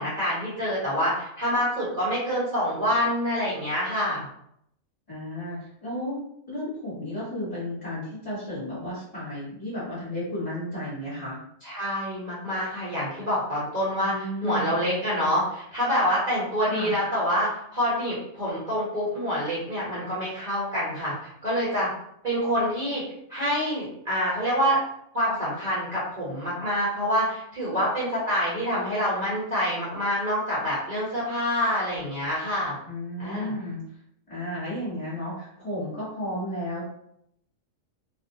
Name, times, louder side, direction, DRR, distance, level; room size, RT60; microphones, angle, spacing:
voice 1, 0.0-4.3 11.6-21.9 22.2-23.0 23.3-24.8 25.1-32.7 33.2-33.5, equal, 35° right, -9 dB, 0.9 m, -26 dB
voice 2, 5.1-6.2 6.5-11.4 14.0-14.7 16.6-17.0 32.9-33.8 34.3-36.9, left 1 dB, 30° left, -10 dB, 1.2 m, -33 dB
2.5 x 2.1 x 2.7 m, 0.73 s
omnidirectional pair, 1.4 m